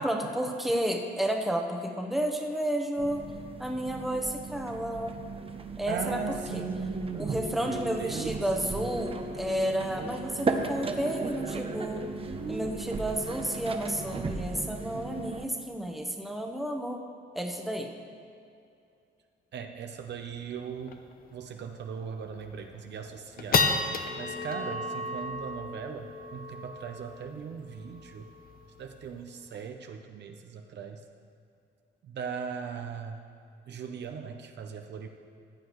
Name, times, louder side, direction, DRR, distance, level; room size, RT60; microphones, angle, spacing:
voice 1, 0.0-3.2 3.6-5.2 5.8-6.2 6.5-6.6 7.2-12.0 12.5-17.0 17.3-17.9, right 1 dB, ahead, 2 dB, 1.0 m, -31 dB
sound 1, 3.0-15.5, right 4 dB, 30° right, 0.7 m, -36 dB
voice 2, 5.9-8.9 19.5-21.0 21.3-23.7 24.2-28.3 28.8-31.0 32.0-33.2 33.7-35.1, right 6 dB, 60° right, 5 dB, 0.7 m, -39 dB
sound 2, 20.0-20.1 20.4-20.5 20.9-21.1 21.6-21.7 22.3-22.6 23.0-29.6, left 4 dB, 45° left, 0.8 m, -33 dB
14.5 x 8.6 x 3.1 m, 2.5 s
cardioid pair, 90°, 20 cm